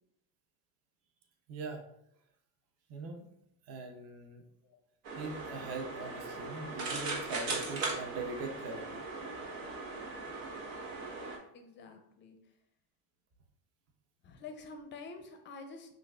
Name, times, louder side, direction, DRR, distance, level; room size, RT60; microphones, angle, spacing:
voice 1, 1.5-1.8 2.9-3.3 3.7-4.4 5.2-9.0, right 3 dB, 40° right, 4 dB, 0.6 m, -41 dB
sound 1, 5.0-11.4, right 3 dB, 80° right, 1.1 m, -39 dB
voice 2, 11.5-12.4 14.2-15.9, left 4 dB, 30° left, 5 dB, 0.4 m, -48 dB
5.8 x 2.4 x 2.3 m, 0.74 s
cardioid pair, 140°, 41 cm